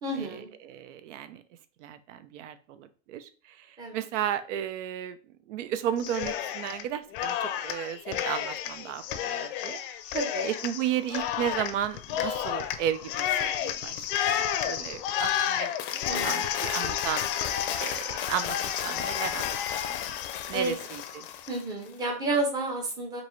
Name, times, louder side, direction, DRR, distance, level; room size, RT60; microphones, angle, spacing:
voice 1, 0.0-0.5 3.8-4.0 10.1-10.5 16.1-16.4 20.5-20.7 21.5-23.2, right 2 dB, 10° right, 2 dB, 0.6 m, -30 dB
voice 2, 0.6-1.4 1.8-5.2 5.5-9.8 10.1-10.2 10.4-14.1 14.6-17.3 17.8-19.6 19.9-21.3, right 10 dB, 90° right, 12 dB, 0.7 m, -34 dB
Cheering, 6.0-6.8 7.1-21.6, left 10 dB, 50° left, 0.5 m, -31 dB
5.2 x 2.7 x 3.1 m, 0.40 s
supercardioid pair, 180°, 35 cm